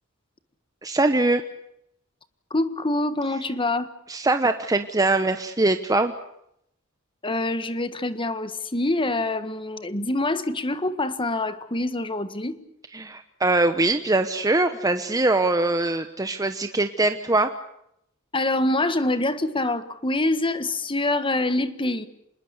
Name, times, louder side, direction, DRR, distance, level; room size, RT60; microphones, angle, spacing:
voice 1, 0.8-1.4 4.1-6.1 12.9-17.5, right 2 dB, 15° right, 8 dB, 1.0 m, -22 dB
voice 2, 2.5-3.9 7.2-12.6 18.3-22.1, left 2 dB, 25° left, 12 dB, 1.6 m, -25 dB
27.0 x 21.0 x 8.2 m, 0.76 s
head